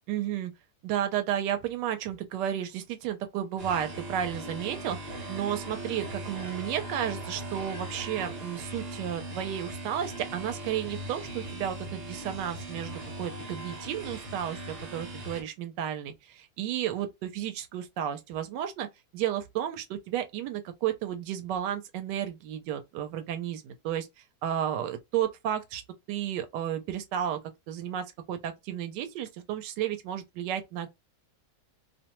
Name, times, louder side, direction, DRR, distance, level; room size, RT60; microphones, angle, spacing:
voice 1, 0.1-0.5 0.8-5.0 5.3-18.9 19.1-24.1 24.4-25.8 26.1-27.4 27.7-30.9, right 10 dB, 85° right, 1.2 m, -32 dB
sound 1, 3.6-15.4, right 1 dB, 45° right, 1.0 m, -39 dB
2.8 x 2.1 x 2.9 m
omnidirectional pair, 1.8 m